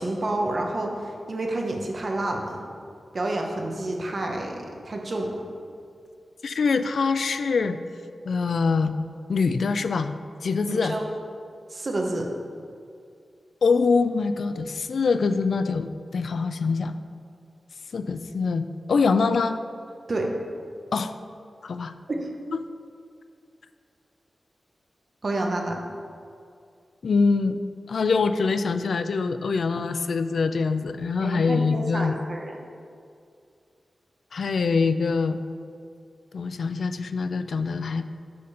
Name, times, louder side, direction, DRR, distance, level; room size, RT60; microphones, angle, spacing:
voice 1, 0.0-2.7 3.1-4.6 4.8-5.4 10.7-11.0 11.7-12.3 20.1-20.3 22.1-22.3 25.2-25.8 31.2-32.5, right 2 dB, 35° right, 1 dB, 0.8 m, -29 dB
voice 2, 6.4-7.8 8.3-8.9 9.3-10.1 10.4-10.9 13.6-17.0 17.9-18.6 18.9-19.6 20.9-21.1 21.6-21.9 27.0-27.6 27.9-32.2 34.3-35.4 36.3-38.0, left 4 dB, 65° left, 10 dB, 0.3 m, -24 dB
6.7 x 5.0 x 5.4 m, 2.4 s
wide cardioid pair, 180°, 0 cm